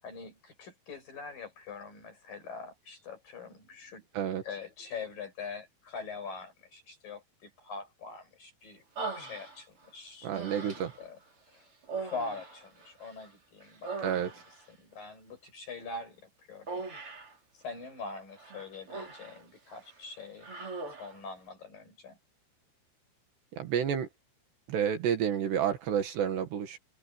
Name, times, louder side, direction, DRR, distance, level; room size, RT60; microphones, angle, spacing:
voice 1, 0.0-4.1 4.4-8.8 9.1-11.2 11.5-11.7 12.0-14.3 14.7-16.9 17.5-20.5 20.9-22.2, left 4 dB, 45° left, 8.7 m, -43 dB
Human voice, 9.0-9.9 10.3-11.1 11.8-13.3 13.6-14.7 16.7-17.4 18.4-19.4 19.7-20.0 20.4-21.2, right 4 dB, 30° right, 4.4 m, -40 dB
voice 2, 10.2-10.9 14.0-14.3 23.6-24.1 24.7-26.8, right 8 dB, 65° right, 3.7 m, -30 dB
open air
omnidirectional pair, 5.5 m